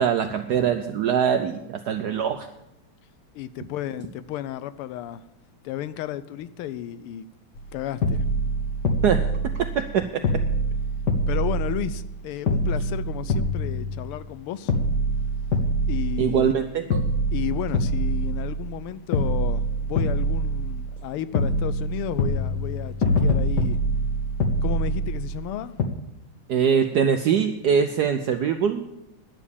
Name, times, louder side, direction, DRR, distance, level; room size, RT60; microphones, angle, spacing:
voice 1, 0.0-2.5 9.0-9.2 9.5-10.2 16.2-17.0 26.5-28.9, right 7 dB, 75° right, 8 dB, 0.9 m, -23 dB
voice 2, 3.3-5.2 5.6-7.3 7.7-8.2 11.3-14.8 15.9-16.5 17.3-23.8 24.6-25.8, left 11 dB, 85° left, 15 dB, 1.5 m, -33 dB
sound 1, 7.6-7.7 8.0-9.9 10.2-12.2 12.5-14.3 14.7-16.6 16.9-18.8 19.1-21.0 21.3-25.5 25.8-25.9, right 1 dB, 60° left, 1.4 m, -25 dB
10.5 x 7.2 x 8.4 m, 0.91 s
omnidirectional pair, 2.4 m